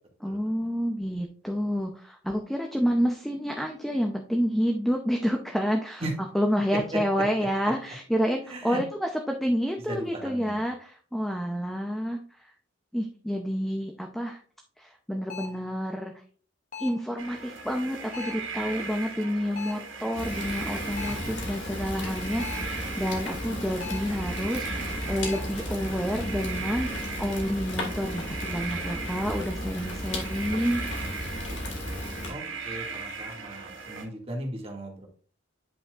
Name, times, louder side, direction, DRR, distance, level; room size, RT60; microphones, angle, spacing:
voice 1, 0.2-6.0 6.3-12.5 12.9-14.4 14.8-16.1 16.8-31.1, equal, ahead, 3 dB, 0.7 m, -29 dB
voice 2, 9.9-10.6 32.3-35.1, right 1 dB, 30° right, 0 dB, 2.1 m, -37 dB
sound 1, 15.3-15.7 16.7-17.1 18.1-18.5 19.6-19.9 21.0-21.3 22.4-22.8 23.8-24.2 25.2-25.6, left 6 dB, 45° left, 1.6 m, -40 dB
sound 2, 17.2-34.1, right 4 dB, 90° right, 2.0 m, -38 dB
Fire, 20.2-32.3, left 1 dB, 70° left, 2.4 m, -34 dB
9.7 x 5.7 x 2.5 m, 0.42 s
head